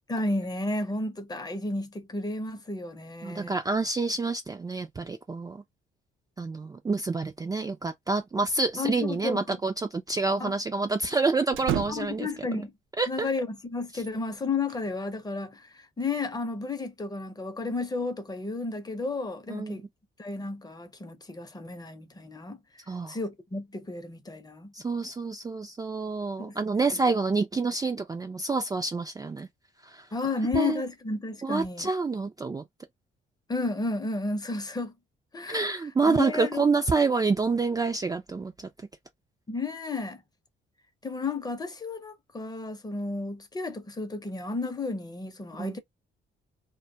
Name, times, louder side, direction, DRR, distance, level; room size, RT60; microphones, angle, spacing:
voice 1, 0.1-3.6 8.8-9.6 10.4-10.5 11.9-12.7 13.1-19.9 20.2-22.6 23.1-24.7 26.4-26.6 26.9-27.0 30.1-31.9 33.5-34.9 35.3-35.8 36.1-36.6 39.5-40.2 41.0-45.8, left 3 dB, 20° left, 0.6 m, -32 dB
voice 2, 3.2-5.6 6.4-12.6 13.0-13.3 19.5-19.8 22.9-23.2 24.7-29.5 29.8-30.1 30.5-30.8 31.4-32.6 35.5-38.7 45.6-45.8, right 3 dB, 20° right, 0.4 m, -28 dB
sound 1, 8.5-9.2 9.5-9.6 11.5-12.4 13.9-14.9, right 11 dB, 85° right, 0.5 m, -34 dB
2.2 x 2.1 x 2.6 m
cardioid pair, 90°, 20 cm